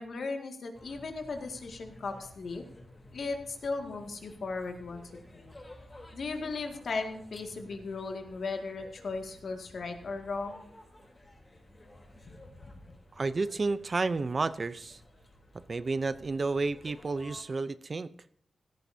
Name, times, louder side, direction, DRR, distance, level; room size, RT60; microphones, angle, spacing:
voice 1, 0.0-2.6 3.1-5.0 5.3-5.5 6.1-10.6 12.2-12.3 12.6-12.7, left 3 dB, 65° left, 3 dB, 2.1 m, -37 dB
sound 1, 0.7-17.4, left 1 dB, 25° left, 3.4 m, -54 dB
voice 2, 13.1-15.0 15.7-18.1, right 3 dB, 40° right, 14 dB, 0.6 m, -31 dB
16.0 x 14.0 x 2.8 m, 0.63 s
wide cardioid pair, 100°, 0 cm